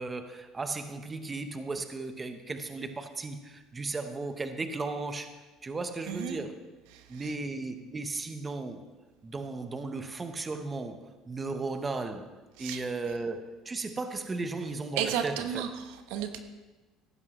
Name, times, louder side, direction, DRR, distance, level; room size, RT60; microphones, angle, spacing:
voice 1, 0.0-6.6 7.1-8.8 9.2-12.3 12.6-15.6, right 3 dB, 20° right, 8 dB, 1.0 m, -35 dB
voice 2, 6.1-6.4 6.9-7.2 12.6-12.8 15.0-16.4, right 9 dB, 80° right, 7 dB, 1.0 m, -33 dB
15.0 x 12.0 x 3.2 m, 1.2 s
supercardioid pair, 105°, 0 cm